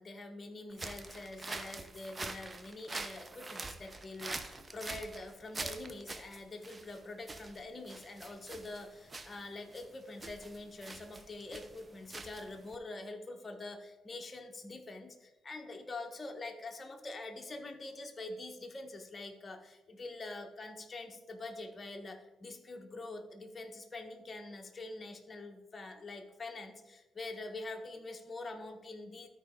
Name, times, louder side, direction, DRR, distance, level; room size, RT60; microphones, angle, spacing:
voice 1, 0.0-29.3, left 2 dB, 30° left, 4 dB, 1.2 m, -45 dB
sound 1, 0.7-12.8, right 3 dB, 25° right, 0.7 m, -45 dB
12.5 x 5.0 x 3.7 m, 1.0 s
cardioid pair, 90°, 0 cm